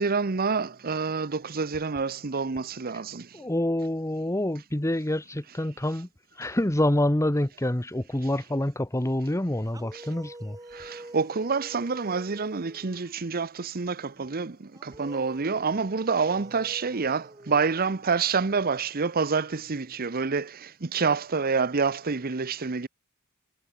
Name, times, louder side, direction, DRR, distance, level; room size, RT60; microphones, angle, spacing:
voice 1, 0.0-3.3 9.9-10.0 10.7-22.9, right 5 dB, 40° right, 0.8 m, -27 dB
voice 2, 3.3-6.1 6.4-10.6, left 1 dB, 15° left, 1.1 m, -27 dB
sound 1, 9.7-13.4 14.7-18.3, right 1 dB, 15° right, 2.6 m, -47 dB
head